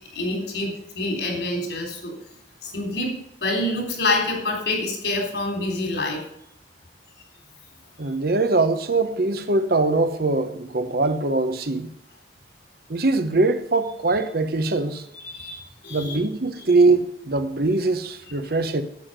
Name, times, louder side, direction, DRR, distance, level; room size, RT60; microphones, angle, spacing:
voice 1, 0.1-2.1 2.6-6.2 15.2-16.2 16.6-16.7, left 2 dB, 75° left, 3.7 m, -27 dB
voice 2, 8.0-11.9 12.9-15.0 15.9-18.8, right 3 dB, 60° right, 0.9 m, -22 dB
9.6 x 8.4 x 6.7 m
head